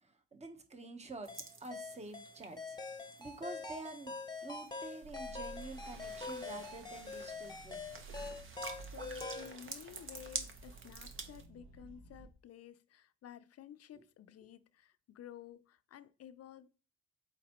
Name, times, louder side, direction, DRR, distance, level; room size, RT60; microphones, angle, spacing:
voice 1, 0.0-2.8 3.2-4.1 4.4-7.8 14.0-14.1, right 2 dB, 20° right, 1.1 m, -48 dB
sound 1, 1.2-11.5, right 4 dB, 45° right, 1.1 m, -49 dB
sound 2, 1.3-9.6, left 3 dB, 15° left, 1.0 m, -44 dB
sound 3, 5.0-12.3, right 3 dB, 75° right, 1.4 m, -54 dB
voice 2, 8.8-16.7, left 10 dB, 55° left, 0.6 m, -53 dB
7.9 x 4.7 x 3.1 m
cardioid pair, 90°, 30 cm